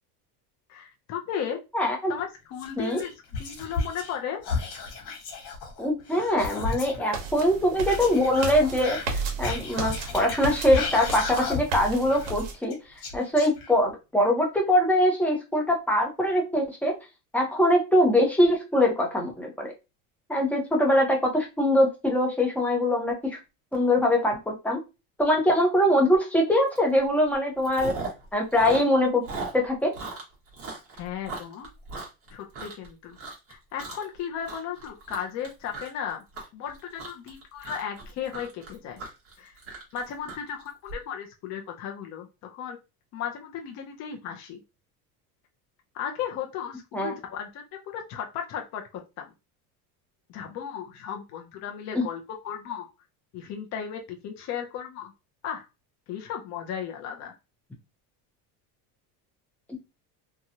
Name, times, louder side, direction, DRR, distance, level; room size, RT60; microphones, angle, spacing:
voice 1, 0.7-1.6 2.1-3.1 3.4-4.4 30.9-31.7 32.3-33.2 33.5-36.2 36.5-39.0 39.4-39.5 39.9-42.8 43.1-44.6 45.9-49.3 50.3-52.9 53.3-55.1 55.4-55.7 56.1-57.3, left 8 dB, 35° left, 3 dB, 0.5 m, -35 dB
voice 2, 1.7-2.1 2.8-3.0 5.8-9.0 9.4-12.8 13.1-16.9 17.3-19.7 20.3-23.1 23.7-24.8 25.2-27.9 28.3-29.2 29.5-29.9 46.9-47.1 51.9-52.0, left 1 dB, 5° left, -1 dB, 0.8 m, -23 dB
Whispering, 2.6-4.2 4.4-7.1 7.8-11.8 12.1-13.9, left 4 dB, 65° left, 1.2 m, -33 dB
sound 1, 7.1-12.5, right 4 dB, 65° right, 1.0 m, -34 dB
Chewing mastication, 26.8-27.0 27.3-28.3 28.5-32.9 33.2-33.5 33.8-34.2 34.4-40.9, right 3 dB, 30° right, 1.2 m, -38 dB
2.9 x 2.2 x 2.7 m, 0.26 s
supercardioid pair, 135°, 46 cm